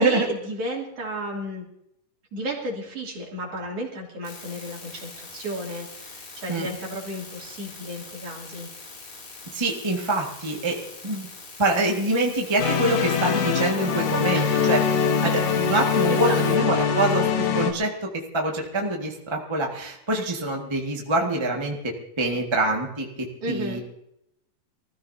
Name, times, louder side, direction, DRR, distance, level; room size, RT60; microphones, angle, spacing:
voice 1, 0.0-1.6 2.3-8.7 14.3-15.0 15.2-15.3 16.1-16.7 23.4-23.8, right 1 dB, 50° right, -2 dB, 3.6 m, -33 dB
sound 1, 4.2-16.6, left 4 dB, 60° left, 3.9 m, -43 dB
voice 2, 9.5-10.8 11.0-11.3 11.6-14.8 15.2-15.3 15.6-23.8, right 2 dB, 15° right, 0 dB, 0.8 m, -25 dB
sound 2, 12.6-17.7, left 6 dB, 85° left, 2.9 m, -23 dB
24.5 x 15.0 x 2.8 m, 0.78 s
omnidirectional pair, 3.8 m